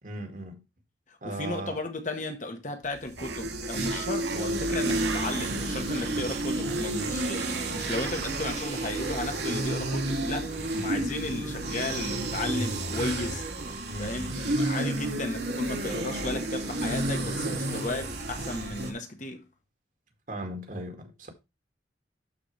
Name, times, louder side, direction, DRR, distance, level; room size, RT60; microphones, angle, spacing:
voice 1, 0.0-0.6 1.2-1.8 13.9-14.4 20.3-21.3, right 1 dB, 45° right, 2.1 m, -38 dB
voice 2, 1.1-13.4 14.0-19.4, left 2 dB, 45° left, 1.6 m, -34 dB
sound 1, 3.0-18.9, right 2 dB, 65° right, 2.3 m, -31 dB
sound 2, 3.2-8.6, right 4 dB, 85° right, 1.1 m, -40 dB
12.5 x 4.6 x 3.3 m
head